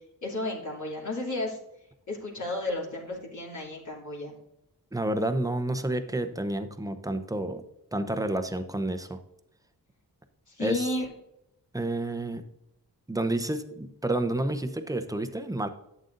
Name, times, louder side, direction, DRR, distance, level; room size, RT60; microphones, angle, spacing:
voice 1, 0.2-1.6 2.1-4.4 10.5-11.1, left 2 dB, 50° left, -4 dB, 2.8 m, -32 dB
voice 2, 4.9-7.6 7.9-9.2 10.6-10.9 11.7-12.4 13.1-15.7, right 1 dB, 10° right, 8 dB, 0.8 m, -29 dB
11.5 x 8.2 x 2.6 m, 0.84 s
cardioid pair, 70°, 38 cm